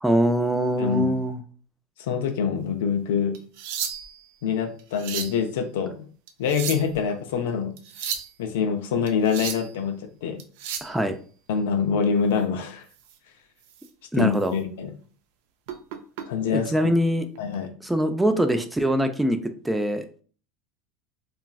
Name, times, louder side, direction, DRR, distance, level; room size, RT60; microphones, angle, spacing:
voice 1, 0.0-1.4 10.8-11.2 14.1-14.5 16.5-17.3 17.8-20.0, right 1 dB, 5° right, 7 dB, 0.3 m, -23 dB
voice 2, 0.8-1.1 2.0-3.4 4.4-6.1 6.4-7.7 8.4-10.4 11.5-12.8 14.1-14.9 16.3-16.9 17.4-17.7, left 6 dB, 85° left, 6 dB, 0.5 m, -25 dB
sound 1, 3.3-4.2 4.8-5.4 6.3-7.0 7.8-8.3 9.1-9.7 10.4-10.9 13.0-13.1 13.7-13.9 14.3-14.5 15.7-16.2 17.3-17.5, right 8 dB, 75° right, 0.4 m, -33 dB
3.0 x 2.3 x 2.3 m, 0.42 s
supercardioid pair, 105°, 0 cm